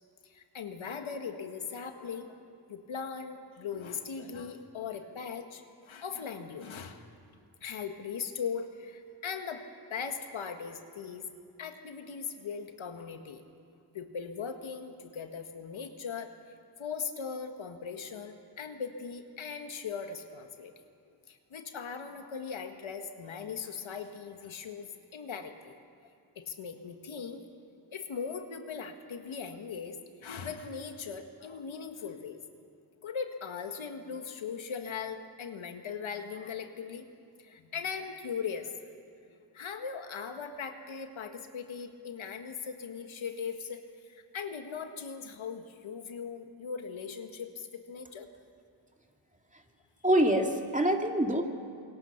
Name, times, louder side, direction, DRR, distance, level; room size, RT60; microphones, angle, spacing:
voice 1, 0.2-2.4 2.7-7.1 7.6-9.6 9.9-11.3 11.6-13.4 13.9-16.3 16.8-20.7 21.3-25.7 26.0-27.4 27.9-32.4 33.0-37.1 37.4-38.9 39.3-48.3, left 6 dB, 80° left, 6 dB, 1.7 m, -39 dB
voice 2, 50.0-51.4, right 1 dB, 15° right, 3 dB, 2.7 m, -25 dB
26.0 x 22.5 x 5.9 m, 2.3 s
cardioid pair, 40°, 46 cm